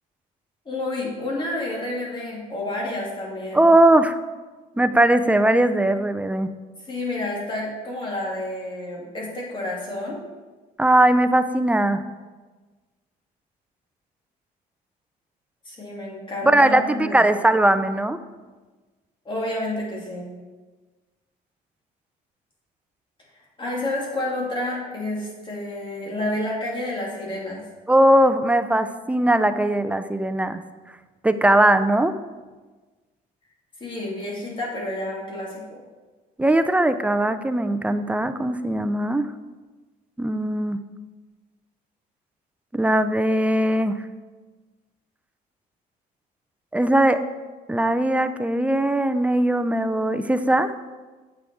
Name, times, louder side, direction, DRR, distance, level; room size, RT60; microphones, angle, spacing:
voice 1, 0.6-3.7 6.8-10.2 15.6-17.3 19.2-20.3 23.6-27.6 33.8-35.6, left 1 dB, 30° left, -4 dB, 2.6 m, -29 dB
voice 2, 3.5-4.2 4.8-6.5 10.8-12.0 16.4-18.2 27.9-30.6 31.2-32.2 36.4-39.3 40.2-40.8 42.7-44.0 46.7-47.2 47.7-50.7, right 1 dB, 10° right, 10 dB, 0.4 m, -19 dB
8.5 x 6.0 x 4.8 m, 1.3 s
cardioid pair, 110°, 17 cm